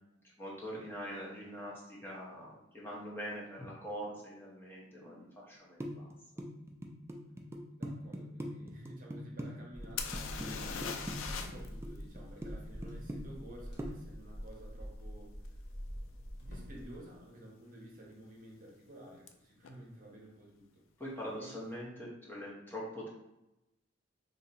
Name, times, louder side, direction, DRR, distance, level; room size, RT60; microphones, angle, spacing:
voice 1, 0.4-6.1 10.3-10.5 21.0-23.1, equal, 10° left, -5 dB, 0.8 m, -43 dB
sound 1, 5.8-9.5 9.8-10.5 10.8-11.9 12.2-12.5 12.8-13.5 13.8-13.9, right 1 dB, 10° right, 0.3 m, -40 dB
voice 2, 7.8-10.9 11.4-15.6 16.4-20.8 21.3-21.5, right 1 dB, 45° right, -2 dB, 0.8 m, -52 dB
sound 2, 9.7-17.0, equal, 55° left, 1.0 m, -45 dB
sound 3, 10.0-11.7 12.0-12.1 15.5-15.6 16.2-16.4 16.6-17.2 19.3-19.4 19.6-19.7, left 6 dB, 75° left, 0.4 m, -40 dB
2.7 x 2.7 x 4.1 m, 0.90 s
head